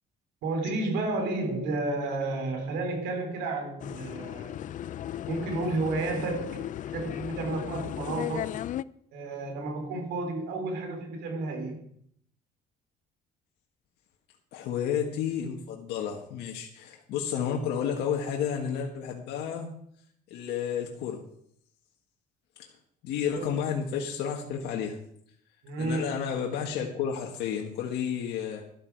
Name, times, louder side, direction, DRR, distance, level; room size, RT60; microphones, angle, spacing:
voice 1, 0.4-4.6 5.3-6.6 6.9-8.5 9.1-11.8 23.3-23.6 25.6-26.1, right 2 dB, 90° right, 4 dB, 3.8 m, -31 dB
sound 1, 3.8-8.8, left 11 dB, 50° left, 0.4 m, -36 dB
voice 2, 14.5-19.7 20.3-21.2 22.6-22.7 23.0-25.0 25.8-28.6, left 8 dB, 80° left, 0 dB, 1.8 m, -31 dB
12.5 x 12.0 x 4.8 m, 0.67 s
cardioid pair, 110°, 17 cm